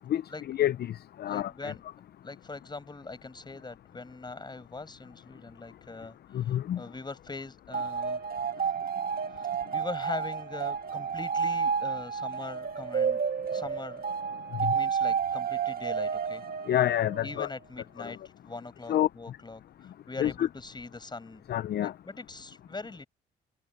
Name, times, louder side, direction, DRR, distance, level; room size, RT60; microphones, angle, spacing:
voice 1, 0.1-1.7 6.3-6.8 14.6-14.7 16.7-17.5 18.0-18.1 18.9-19.1 20.2-20.5 21.5-21.9, left 12 dB, 55° left, 0.5 m, -28 dB
voice 2, 1.2-1.8 2.2-6.1 6.4-8.2 9.4-13.2 13.5-14.0 14.6-16.4 17.2-18.2 18.4-21.4 21.8-23.1, left 3 dB, 20° left, 6.5 m, -41 dB
sound 1, 7.7-17.5, right 6 dB, 50° right, 1.7 m, -31 dB
cardioid pair, 90°, 20 cm